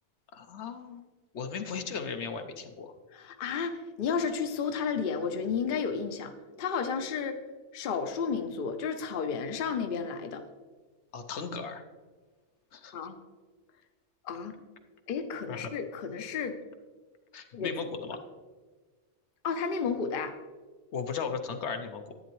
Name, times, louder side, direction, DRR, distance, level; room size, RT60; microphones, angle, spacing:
voice 1, 0.3-1.0 1.3-2.9 11.1-11.8 12.7-12.9 15.5-15.7 17.3-18.2 20.9-22.1, left 5 dB, 75° left, 6 dB, 1.0 m, -36 dB
voice 2, 3.1-7.4 7.7-10.4 12.9-13.2 14.2-14.5 15.1-16.5 17.5-17.7 19.4-20.3, left 6 dB, 55° left, 7 dB, 0.8 m, -32 dB
11.0 x 9.2 x 3.1 m, 1.4 s
omnidirectional pair, 1.2 m